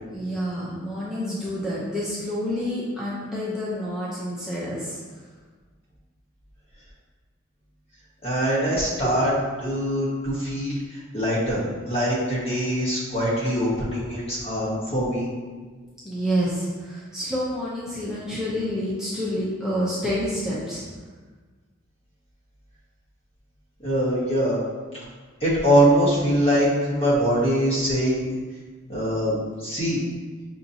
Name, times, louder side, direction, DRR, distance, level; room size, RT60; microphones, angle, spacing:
voice 1, 0.1-5.2 9.0-9.2 16.0-20.8, equal, 5° right, -9 dB, 0.6 m, -28 dB
voice 2, 8.2-9.3 9.6-15.3 23.8-24.6 25.4-28.4 28.9-30.0, equal, 30° left, -7 dB, 1.3 m, -23 dB
5.6 x 2.8 x 2.6 m, 1.4 s
head